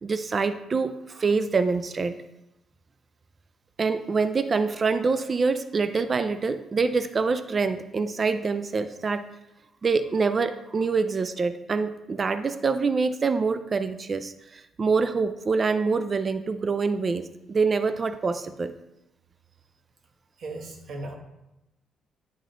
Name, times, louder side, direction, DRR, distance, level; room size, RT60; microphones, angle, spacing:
voice 1, 0.0-2.2 3.8-9.2 9.8-18.7, right 4 dB, 35° right, 11 dB, 0.4 m, -25 dB
voice 2, 20.4-21.2, right 2 dB, 60° right, 2 dB, 1.3 m, -36 dB
9.1 x 3.8 x 3.8 m, 0.92 s
cardioid pair, 90°, 0 cm